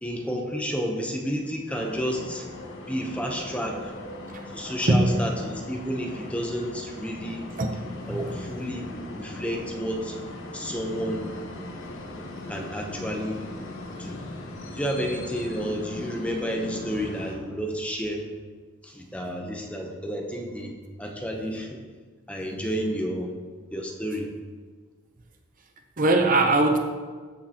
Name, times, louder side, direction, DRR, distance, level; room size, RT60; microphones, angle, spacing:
voice 1, 0.0-2.5 2.9-3.9 4.5-7.5 8.1-10.2 10.5-11.3 12.5-13.5 14.0-14.2 14.7-18.3 18.8-20.7 21.0-21.8 22.3-23.4 23.7-24.3, equal, 5° left, 1 dB, 0.8 m, -31 dB
sound 1, 1.7-17.4, left 2 dB, 70° left, 1.1 m, -39 dB
voice 2, 4.8-5.3 7.6-7.7 8.1-8.4 26.0-26.8, right 2 dB, 40° right, 4 dB, 0.7 m, -21 dB
13.5 x 6.5 x 2.9 m, 1.5 s
head